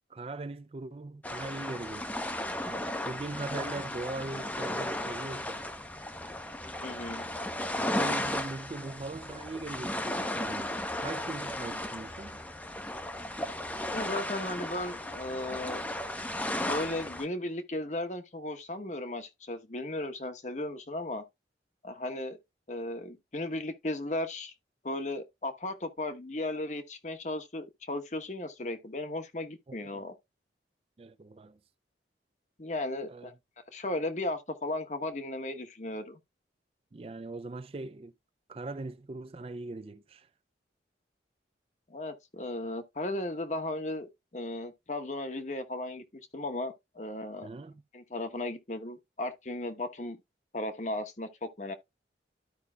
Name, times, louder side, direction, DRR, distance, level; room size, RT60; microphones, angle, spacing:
voice 1, 0.1-2.2 2.6-5.6 7.9-12.4 29.7-30.0 31.0-31.6 33.1-33.3 36.9-38.1 38.5-40.3 47.4-47.8, right 2 dB, 30° right, 0.4 m, -40 dB
sound 1, 1.2-17.2, left 1 dB, 10° left, 0.6 m, -35 dB
voice 2, 6.8-7.3 13.9-15.8 16.6-21.2 21.8-22.4 22.7-24.5 24.8-30.1 32.6-33.3 33.7-36.2 41.9-47.5 47.9-50.2 50.5-51.7, left 1 dB, 40° left, 1.0 m, -36 dB
13.0 x 5.3 x 2.3 m
head